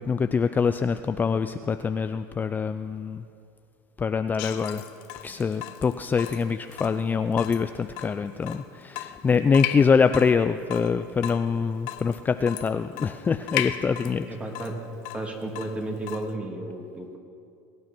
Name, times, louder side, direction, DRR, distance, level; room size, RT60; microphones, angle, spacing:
voice 1, 0.0-3.2 4.0-4.8 5.2-14.3, left 5 dB, 20° left, 10 dB, 0.4 m, -24 dB
Water tap faucet / Drip, 4.4-16.4, left 13 dB, 70° left, 0.9 m, -37 dB
voice 2, 14.3-14.8 15.1-17.2, right 2 dB, 15° right, 1 dB, 2.8 m, -33 dB
22.0 x 9.5 x 6.0 m, 2.5 s
supercardioid pair, 100°, 8 cm